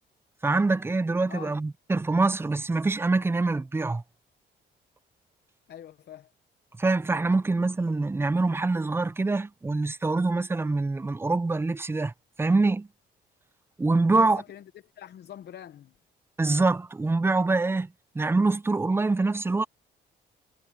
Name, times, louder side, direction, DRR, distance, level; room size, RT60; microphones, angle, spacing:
voice 1, 0.4-4.0 6.8-12.1 12.4-12.9 13.8-14.4 16.4-17.9 18.2-19.6, right 3 dB, 10° right, 0.4 m, -25 dB
voice 2, 1.3-1.6 5.7-6.3 14.1-14.7 15.0-15.9, left 10 dB, 60° left, 0.8 m, -44 dB
cardioid pair, 90°, 20 cm